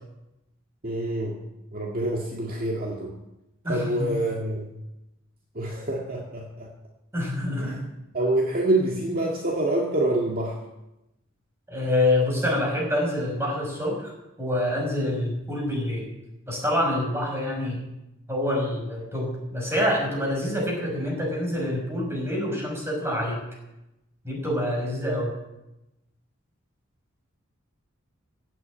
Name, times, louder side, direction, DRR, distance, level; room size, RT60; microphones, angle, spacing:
voice 1, 0.8-1.4 1.7-3.1 3.7-4.7 5.6-6.7 7.5-7.8 8.1-10.6, right 1 dB, 45° right, -1 dB, 2.0 m, -26 dB
voice 2, 3.6-4.2 7.1-7.8 11.7-14.1 14.4-16.1 16.5-17.8 18.3-23.4 24.2-25.3, left 1 dB, 15° right, -2 dB, 6.1 m, -26 dB
16.0 x 9.0 x 8.6 m, 0.92 s
head